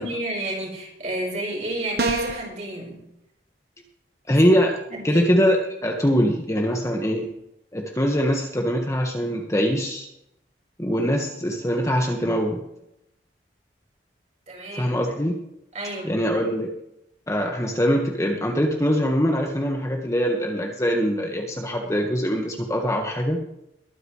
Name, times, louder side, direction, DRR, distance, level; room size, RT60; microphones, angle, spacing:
voice 1, 0.0-3.0 4.9-5.3 14.5-14.9 15.7-16.2, right 1 dB, 40° right, -1 dB, 5.0 m, -31 dB
sound 1, 2.0-2.5, right 2 dB, 60° right, 1.3 m, -25 dB
voice 2, 4.3-4.8 5.0-7.3 7.7-10.1 10.8-12.6 14.7-15.4 16.0-16.7 17.3-23.4, equal, 15° left, 1 dB, 1.6 m, -23 dB
22.0 x 9.3 x 3.3 m, 0.81 s
head